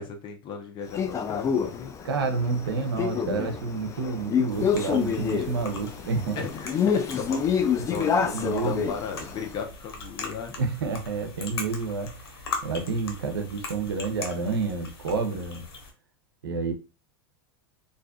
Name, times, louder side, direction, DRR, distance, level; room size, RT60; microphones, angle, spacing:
voice 1, 0.0-1.9 6.3-8.1 8.4-10.6, left 6 dB, 40° left, 0.8 m, -36 dB
Male speech man speaking, 0.9-9.5, left 7 dB, 25° left, 0.4 m, -27 dB
voice 2, 2.0-6.4 7.8-8.8 10.6-12.3 12.6-15.6 16.4-16.7, right 4 dB, 85° right, 0.6 m, -29 dB
sound 1, 4.5-15.9, left 3 dB, 90° left, 0.8 m, -40 dB
2.5 x 2.4 x 2.3 m
hypercardioid pair, 110°, 12 cm